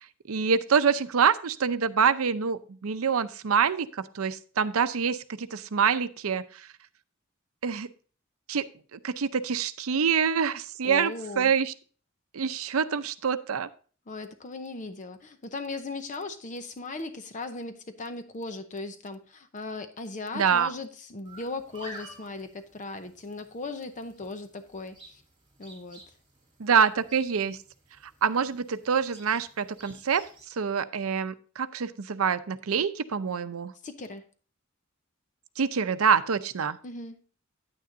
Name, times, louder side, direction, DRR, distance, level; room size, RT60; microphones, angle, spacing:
voice 1, 0.3-6.4 7.6-7.9 8.5-8.7 8.9-11.7 12.3-13.7 20.3-20.7 26.6-27.6 28.2-30.2 30.6-33.7 35.6-36.8, right 6 dB, 85° right, 0.6 m, -26 dB
voice 2, 10.8-11.5 14.1-25.2 25.6-26.0 33.8-34.2 36.8-37.2, left 3 dB, 35° left, 0.7 m, -38 dB
sound 1, 21.3-30.5, right 2 dB, 25° right, 3.0 m, -51 dB
9.6 x 9.3 x 2.6 m
head